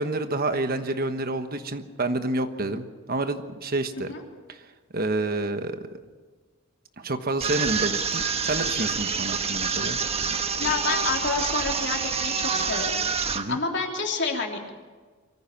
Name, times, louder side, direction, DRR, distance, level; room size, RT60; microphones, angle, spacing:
voice 1, 0.0-4.1 4.5-4.6 4.9-5.8 7.0-10.0 13.3-13.6, right 2 dB, 50° right, 8 dB, 1.3 m, -28 dB
sound 1, 7.4-13.4, right 6 dB, 30° right, 1.3 m, -27 dB
voice 2, 10.6-12.9 13.2-14.7, left 4 dB, 60° left, 1 dB, 3.3 m, -29 dB
23.5 x 15.5 x 7.4 m, 1.4 s
head